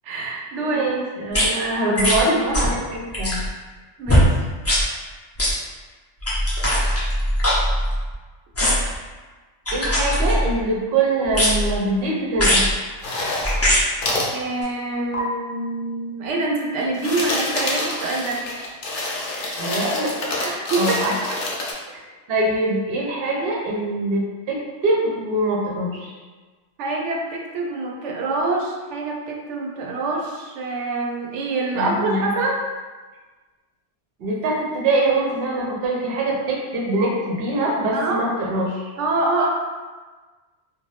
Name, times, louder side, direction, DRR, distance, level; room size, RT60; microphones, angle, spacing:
voice 1, 0.0-0.8 4.0-4.3 14.3-18.4 20.4-21.2 26.8-32.6 37.9-38.2 39.0-39.5, right 2 dB, 90° right, -1 dB, 0.9 m, -25 dB
voice 2, 0.6-3.4 9.7-12.6 19.6-20.1 20.4-21.3 21.9-22.0 22.3-26.1 31.7-32.3 34.2-38.9, right 2 dB, 60° right, -3 dB, 0.8 m, -23 dB
sound 1, 1.3-1.4 2.0-2.2 2.5-2.8 3.1-3.5 4.1-4.3 4.6-4.8 5.4-5.5 6.2-8.1 8.5-8.9 9.7-10.6 11.3-11.8 12.4-12.7 13.4-13.8 14.6-14.7, equal, 20° left, 0.4 m, -20 dB
sound 2, 13.0-13.6 14.0-14.3 15.1-15.2 16.8-21.7, left 2 dB, 55° left, 0.7 m, -27 dB
2.6 x 2.3 x 3.2 m, 1.3 s
omnidirectional pair, 1.2 m